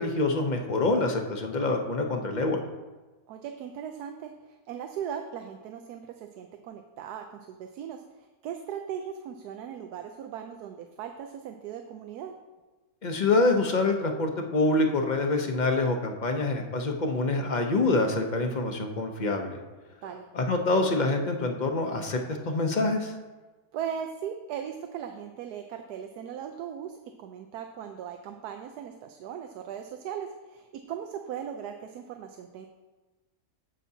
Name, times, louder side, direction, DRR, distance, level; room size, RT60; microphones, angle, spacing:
voice 1, 0.0-2.6 13.0-19.6 20.3-22.2 22.5-23.1, left 2 dB, 40° left, 4 dB, 0.7 m, -26 dB
voice 2, 3.3-4.3 4.7-8.0 8.4-12.3 20.0-20.3 23.7-32.7, right 8 dB, 85° right, 5 dB, 1.1 m, -38 dB
16.0 x 5.8 x 2.8 m, 1.2 s
omnidirectional pair, 1.6 m